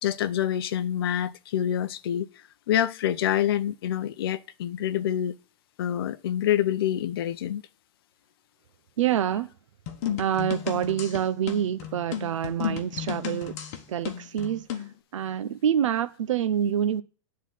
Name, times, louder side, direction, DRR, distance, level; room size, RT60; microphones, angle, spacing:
voice 1, 0.0-2.3 2.7-5.3 5.8-7.6, left 11 dB, 50° left, 0.6 m, -26 dB
voice 2, 9.0-9.5 10.2-13.6 13.9-14.8 15.1-17.0, right 9 dB, 75° right, 0.7 m, -26 dB
sound 1, 9.9-14.9, left 9 dB, 30° left, 1.1 m, -34 dB
10.0 x 3.8 x 7.3 m
supercardioid pair, 180°, 16 cm